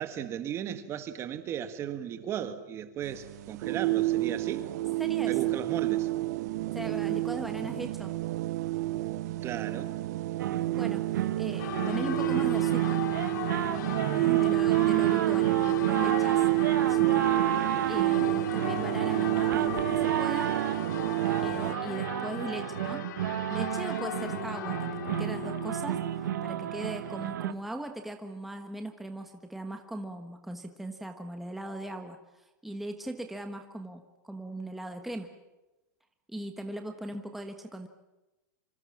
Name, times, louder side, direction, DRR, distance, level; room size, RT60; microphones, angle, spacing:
voice 1, 0.0-4.7 5.3-6.1 9.4-9.9 14.2-14.6 24.2-24.4, right 9 dB, 25° right, 1.8 m, -36 dB
sound 1, 3.0-21.7, right 17 dB, 60° right, 0.9 m, -29 dB
voice 2, 5.0-5.5 6.7-8.1 10.7-13.0 14.0-16.5 16.7-17.2 17.9-20.5 21.4-23.0 23.5-35.3 36.3-37.9, right 1 dB, ahead, 1.3 m, -39 dB
sound 2, 10.4-27.5, right 11 dB, 90° right, 1.4 m, -32 dB
Church bell, 11.6-27.3, left 13 dB, 75° left, 1.2 m, -39 dB
26.0 x 26.0 x 7.4 m
supercardioid pair, 150°, 10 cm